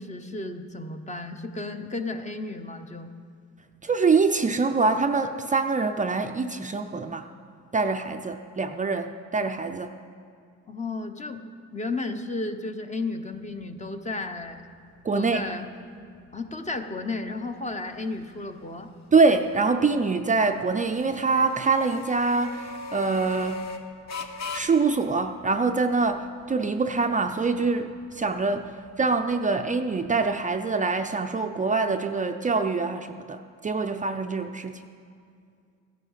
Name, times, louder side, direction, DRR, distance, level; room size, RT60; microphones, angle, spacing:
voice 1, 0.0-3.1 10.7-11.4 11.7-14.6 15.1-15.7 16.3-18.9, left 3 dB, 25° left, 6 dB, 0.9 m, -33 dB
voice 2, 3.8-7.2 7.7-9.9 15.0-15.4 19.1-23.6 24.5-33.4 33.6-34.8, right 4 dB, 25° right, 6 dB, 0.5 m, -24 dB
sound 1, 13.3-30.5, left 4 dB, 60° left, 1.2 m, -43 dB
15.0 x 10.5 x 5.7 m, 2.3 s
cardioid pair, 90°, 30 cm